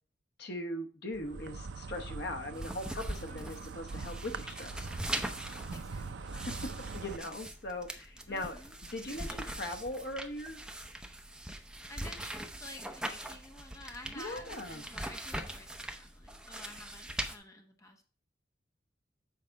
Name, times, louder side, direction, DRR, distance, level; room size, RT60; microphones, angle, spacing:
voice 1, 0.4-4.9 6.3-6.5 6.9-8.6 8.9-10.6 14.2-14.8, left 1 dB, 60° left, 5 dB, 1.1 m, -40 dB
Insect, 1.1-7.2, right 4 dB, 75° right, 0.5 m, -43 dB
sound 1, 2.5-17.4, right 1 dB, 5° right, 0.8 m, -42 dB
voice 2, 3.3-3.6 5.7-6.3 6.6-6.8 8.3-8.8 11.5-18.0, left 2 dB, 15° left, 3 dB, 1.1 m, -51 dB
7.5 x 5.0 x 4.6 m, 0.40 s
head